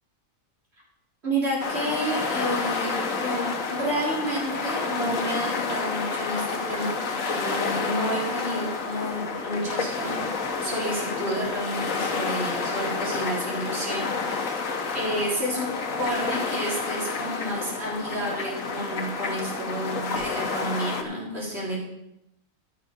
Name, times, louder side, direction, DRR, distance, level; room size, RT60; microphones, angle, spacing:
voice 1, 1.2-10.2 10.6-14.7 14.9-15.7 16.0-21.8, right 1 dB, 50° right, -5 dB, 3.7 m, -30 dB
sound 1, 1.6-21.0, left 4 dB, 75° left, 1.4 m, -29 dB
14.5 x 6.3 x 5.1 m, 0.87 s
omnidirectional pair, 1.4 m